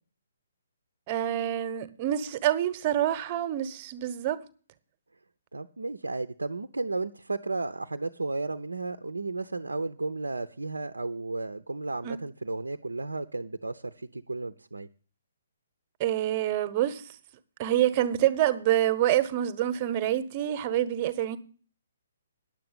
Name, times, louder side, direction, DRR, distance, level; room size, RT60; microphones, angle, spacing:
voice 1, 1.1-4.4 12.0-12.2 16.0-17.0 17.6-21.4, right 12 dB, 30° right, 1.1 m, -26 dB
voice 2, 5.5-14.9, right 3 dB, 75° right, 0.6 m, -33 dB
10.5 x 7.7 x 7.3 m
figure-of-eight pair, 130°, 0 cm